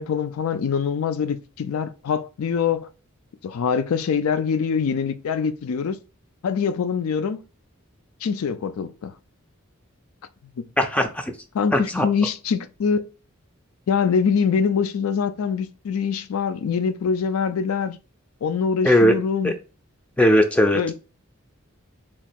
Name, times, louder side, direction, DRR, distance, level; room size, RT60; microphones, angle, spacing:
voice 1, 0.0-2.9 3.4-6.0 6.4-7.4 8.2-9.1 10.6-10.7 11.5-13.0 13.9-18.0 18.4-19.5 20.7-20.9, left 6 dB, 85° left, 0.4 m, -24 dB
voice 2, 10.8-11.3 11.7-12.1 18.8-19.2 19.4-19.6 20.2-20.9, equal, 5° left, 0.3 m, -18 dB
3.0 x 2.3 x 4.2 m
head